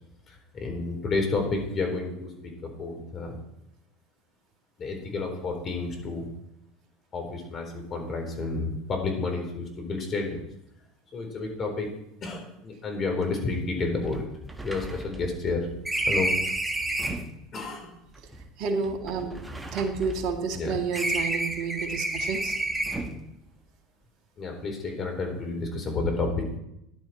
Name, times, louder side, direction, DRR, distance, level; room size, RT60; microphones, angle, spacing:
voice 1, 0.3-3.4 4.8-6.3 7.1-10.4 11.1-11.9 12.2-14.3 14.6-15.7 16.1-16.3 17.5-18.0 20.5-20.8 24.4-26.6, left 3 dB, 35° left, 3 dB, 4.0 m, -30 dB
sound 1, 13.2-13.3 13.5-13.6 14.0-17.3 18.2-20.6 20.9-23.2, right 2 dB, 10° right, 1.5 m, -31 dB
voice 2, 18.6-19.3 19.7-22.5, right 5 dB, 55° right, 5 dB, 1.9 m, -30 dB
14.0 x 11.0 x 4.4 m, 0.82 s
hypercardioid pair, 80°, 0 cm